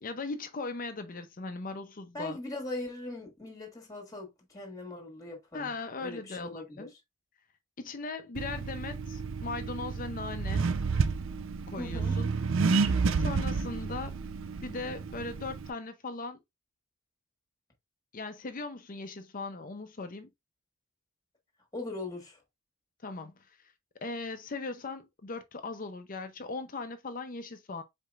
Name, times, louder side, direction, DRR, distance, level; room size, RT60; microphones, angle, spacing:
voice 1, 0.0-2.4 5.5-6.9 7.8-10.7 11.7-12.3 13.1-14.2 14.6-16.4 18.1-20.3 23.0-23.3 24.0-27.8, left 3 dB, 40° left, 0.5 m, -38 dB
voice 2, 2.1-5.7 6.0-6.9 11.8-12.2 21.7-22.4, left 2 dB, 15° left, 1.5 m, -40 dB
Accelerating revving vroom, 8.4-15.7, right 4 dB, 60° right, 0.5 m, -30 dB
4.8 x 4.2 x 2.4 m
head